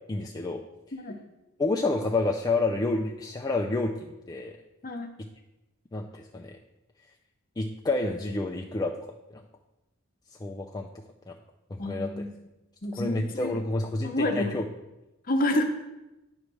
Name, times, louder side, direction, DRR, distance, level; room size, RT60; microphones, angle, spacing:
voice 1, 0.1-0.6 1.6-4.6 5.9-6.6 7.6-9.1 9.3-9.4 10.4-10.9 11.3-11.4 11.7-12.1 13.0-14.6, left 2 dB, 20° left, 1 dB, 0.4 m, -29 dB
voice 2, 11.8-12.3 12.8-13.6 14.0-14.5 15.2-15.6, left 1 dB, 40° left, 5 dB, 0.9 m, -28 dB
9.5 x 3.3 x 6.1 m, 0.97 s
head